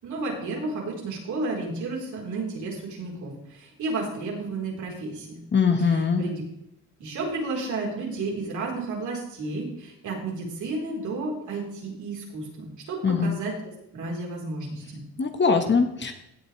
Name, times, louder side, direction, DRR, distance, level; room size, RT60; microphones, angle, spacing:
voice 1, 0.0-5.4 5.8-6.4 7.0-13.5 13.9-15.0, right 3 dB, 75° right, -2 dB, 4.7 m, -32 dB
voice 2, 5.5-6.2 13.0-13.4 15.2-16.1, left 5 dB, 40° left, 5 dB, 1.8 m, -22 dB
16.5 x 8.2 x 3.5 m, 0.80 s
cardioid pair, 90°, 30 cm